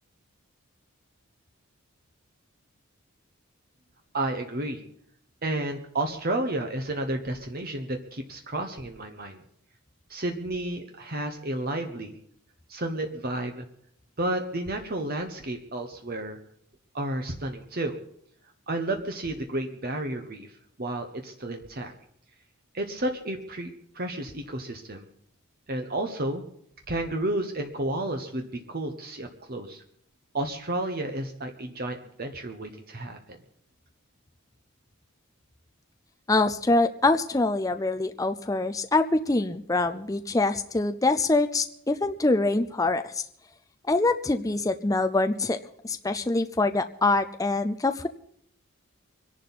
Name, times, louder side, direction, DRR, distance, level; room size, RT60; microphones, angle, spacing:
voice 1, 4.1-4.8 5.4-9.4 10.1-12.1 12.7-13.7 14.2-16.4 16.9-17.9 18.7-20.5 20.8-21.9 22.7-23.7 23.9-25.1 25.7-26.4 26.9-29.8 30.3-33.4, right 1 dB, 45° right, 5 dB, 1.2 m, -31 dB
voice 2, 36.3-43.2 43.9-45.6 45.8-48.1, left 2 dB, 15° left, 8 dB, 0.5 m, -24 dB
24.5 x 11.0 x 4.2 m, 0.68 s
head